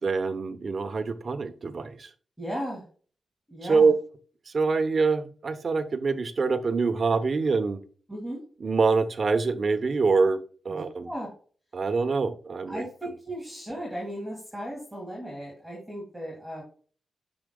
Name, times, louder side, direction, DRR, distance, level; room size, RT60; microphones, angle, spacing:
voice 1, 0.0-2.1 3.6-3.9 4.5-7.8 8.6-10.4 10.6-11.1 11.7-12.8, right 4 dB, 45° right, 9 dB, 0.9 m, -25 dB
voice 2, 2.4-2.8 3.5-3.9 8.1-8.4 10.7-11.3 12.7-16.6, equal, ahead, -4 dB, 2.6 m, -36 dB
8.5 x 6.2 x 2.3 m, 0.40 s
wide cardioid pair, 115°, 0 cm